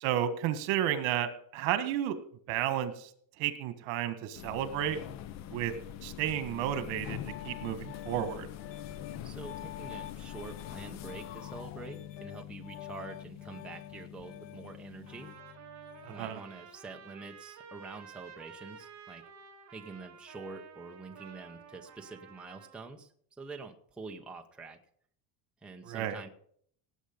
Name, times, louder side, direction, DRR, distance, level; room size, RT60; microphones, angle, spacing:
voice 1, 0.0-2.2 2.5-3.1 3.4-5.0 5.5-5.7 6.0-8.5 16.0-16.4 25.9-26.2, right 11 dB, 65° right, 10 dB, 1.7 m, -32 dB
sound 1, 4.3-15.4, left 11 dB, 35° left, 0.5 m, -45 dB
Piano, 6.7-16.4, left 12 dB, 65° left, 1.2 m, -47 dB
voice 2, 9.2-15.3 16.1-19.2 19.7-23.1 23.4-24.8 25.6-26.3, right 3 dB, ahead, 2 dB, 0.8 m, -46 dB
Trumpet, 15.1-22.8, right 7 dB, 35° right, 3.7 m, -52 dB
18.5 x 8.0 x 5.2 m, 0.62 s
cardioid pair, 165°, 49 cm